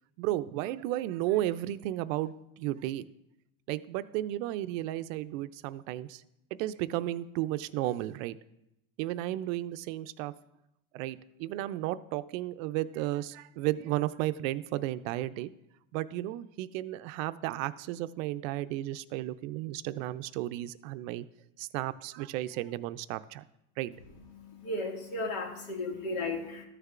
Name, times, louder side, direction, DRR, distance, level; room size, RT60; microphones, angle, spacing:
voice 1, 0.2-3.0 3.7-6.2 6.6-8.4 9.0-10.3 10.9-15.5 15.9-21.2 21.6-23.4 23.8-23.9, right 15 dB, 70° right, 14 dB, 0.5 m, -33 dB
voice 2, 24.4-26.6, left 2 dB, 85° left, 1 dB, 2.1 m, -35 dB
13.5 x 6.5 x 2.4 m, 0.87 s
cardioid pair, 155°, 40 cm